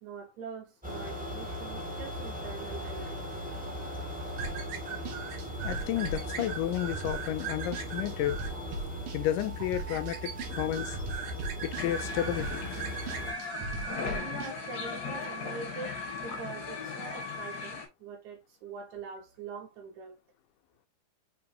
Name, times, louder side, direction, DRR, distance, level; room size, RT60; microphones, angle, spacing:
voice 1, 0.0-3.5 8.5-8.7 9.6-9.7 14.2-20.2, right 5 dB, 70° right, 2.2 m, -44 dB
sound 1, 0.8-13.3, equal, 15° right, 0.3 m, -39 dB
sound 2, 4.4-14.5, right 5 dB, 85° right, 2.6 m, -39 dB
voice 2, 5.6-8.4 9.1-11.0 11.6-12.8, left 12 dB, 85° left, 2.1 m, -32 dB
sound 3, 11.8-17.9, left 4 dB, 65° left, 0.9 m, -37 dB
6.8 x 2.9 x 2.7 m
omnidirectional pair, 3.7 m